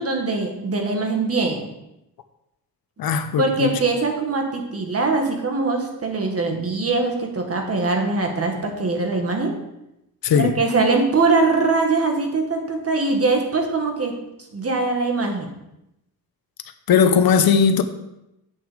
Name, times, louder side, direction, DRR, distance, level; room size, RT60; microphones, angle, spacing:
voice 1, 0.0-1.7 3.4-9.5 10.3-14.1 14.5-15.5, right 3 dB, 40° right, 1.8 m, -22 dB
voice 2, 3.0-3.7 10.2-10.5 16.9-17.8, left 6 dB, 70° left, 0.9 m, -18 dB
8.3 x 7.0 x 5.1 m
wide cardioid pair, 115°, 37 cm